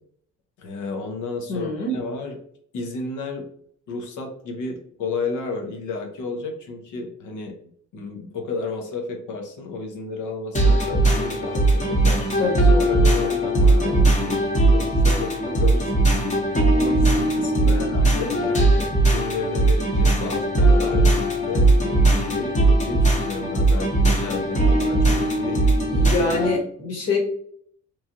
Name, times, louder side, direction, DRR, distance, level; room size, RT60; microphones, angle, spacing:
voice 1, 0.6-2.4 2.7-3.4 3.9-7.5 7.9-12.3 12.7-25.7, left 3 dB, 80° left, 4 dB, 0.8 m, -32 dB
voice 2, 1.5-1.9 12.4-12.8 13.8-14.1 17.6-17.9 25.5-25.6 25.9-27.2, left 3 dB, 55° left, 0 dB, 1.2 m, -26 dB
sound 1, 10.5-26.6, right 2 dB, 25° left, 0.9 m, -19 dB
3.1 x 2.3 x 2.6 m, 0.62 s
cardioid pair, 90°, 30 cm